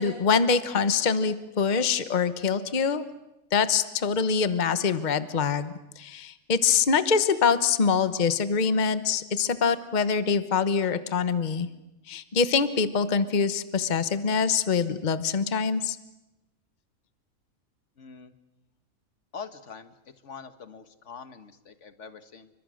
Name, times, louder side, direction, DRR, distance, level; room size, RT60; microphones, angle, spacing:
voice 1, 0.0-3.1 3.5-11.7 12.1-16.0, left 5 dB, 35° left, 12 dB, 1.1 m, -24 dB
voice 2, 18.0-18.3 19.3-19.9 20.2-22.5, left 5 dB, 55° left, 10 dB, 1.8 m, -43 dB
29.0 x 25.0 x 6.4 m, 0.97 s
omnidirectional pair, 1.5 m